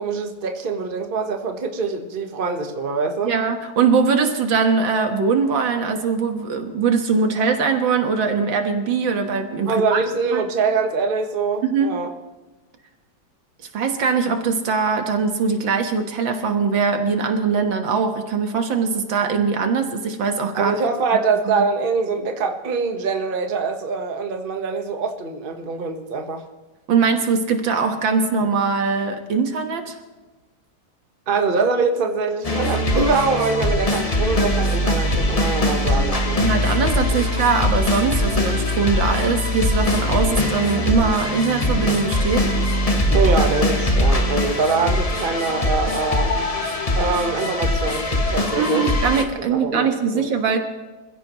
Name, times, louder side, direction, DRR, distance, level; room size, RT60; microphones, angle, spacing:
voice 1, 0.0-3.4 9.7-12.1 20.5-26.4 31.3-36.5 43.1-46.3 46.9-48.9 49.5-50.3, right 4 dB, 30° right, 4 dB, 1.3 m, -24 dB
voice 2, 3.2-10.0 10.3-10.5 11.6-12.0 13.7-20.8 21.5-21.6 26.9-30.0 36.4-42.5 48.3-50.6, right 5 dB, 80° right, 5 dB, 2.2 m, -21 dB
sound 1, 32.4-49.2, left 1 dB, 25° left, 0.9 m, -21 dB
26.0 x 15.5 x 3.1 m, 1.2 s
omnidirectional pair, 2.1 m